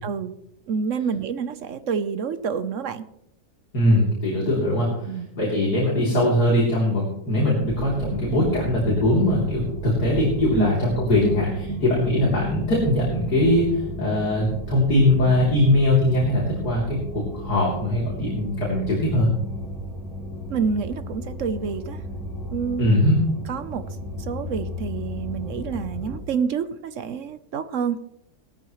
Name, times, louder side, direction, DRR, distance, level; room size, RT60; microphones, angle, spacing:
voice 1, 0.0-0.3 0.7-3.0 5.1-5.3 10.6-10.7 11.2-11.4 11.7-11.8 20.5-22.0 22.5-22.9 23.5-23.8 24.2-28.0, right 6 dB, 55° right, 12 dB, 0.9 m, -28 dB
voice 2, 3.7-11.5 11.8-19.3 22.8-23.2, left 1 dB, 60° left, -5 dB, 3.9 m, -21 dB
sound 1, 7.6-26.2, equal, ahead, 6.5 m, -34 dB
17.5 x 13.5 x 3.2 m, 0.79 s
omnidirectional pair, 1.9 m